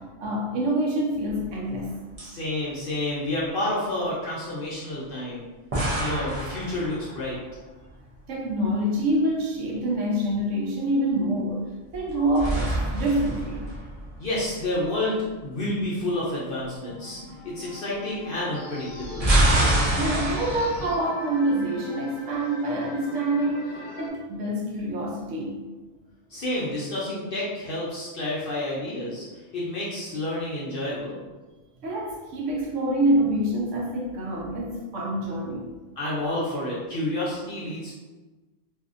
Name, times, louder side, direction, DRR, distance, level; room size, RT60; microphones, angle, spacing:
voice 1, 0.0-1.9 8.3-13.7 19.9-25.6 31.8-35.7, right 1 dB, 70° right, -2 dB, 0.9 m, -26 dB
sound 1, 1.3-1.9 2.2-2.3 5.7-7.4 11.9-14.5 18.9-20.9, right 1 dB, 45° right, 0.5 m, -26 dB
voice 2, 2.2-5.5 6.0-7.4 14.2-19.3 26.3-31.2 36.0-37.9, left 1 dB, 55° left, -7 dB, 0.7 m, -29 dB
sound 2, 16.6-24.1, left 3 dB, 80° left, 1.0 m, -41 dB
sound 3, 18.5-21.0, right 1 dB, 5° right, 0.9 m, -45 dB
2.6 x 2.4 x 2.4 m, 1.2 s
omnidirectional pair, 1.4 m